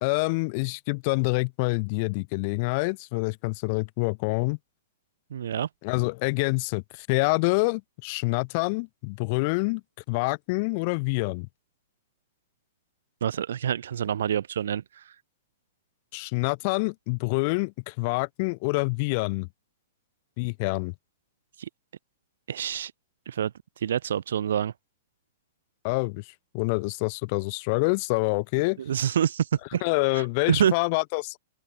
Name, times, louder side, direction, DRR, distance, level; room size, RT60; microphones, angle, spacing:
voice 1, 0.0-4.6 5.8-9.8 10.1-11.5 16.1-19.5 20.4-20.9 25.8-26.2 26.5-28.8 29.8-31.4, left 29 dB, 35° left, 0.5 m, -26 dB
voice 2, 5.3-5.7 13.2-15.0 21.6-21.7 22.5-22.9 23.3-23.5 23.8-24.7 28.9-29.8 30.1-30.2 30.5-30.7, right 9 dB, 75° right, 1.3 m, -26 dB
open air
hypercardioid pair, 165°, 0 cm